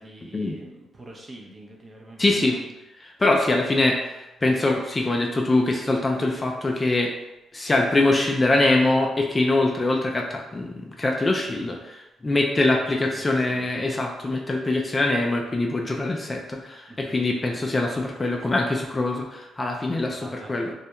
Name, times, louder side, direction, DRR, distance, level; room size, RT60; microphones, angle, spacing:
voice 1, 0.0-2.7 13.0-13.7 13.9-14.0 16.9-17.2 20.1-20.7, right 1 dB, 30° right, -1 dB, 0.6 m, -45 dB
voice 2, 2.2-2.6 3.0-7.1 7.5-20.7, left 2 dB, 25° left, 1 dB, 0.3 m, -23 dB
2.3 x 2.0 x 2.8 m, 0.98 s
cardioid pair, 90°, 0 cm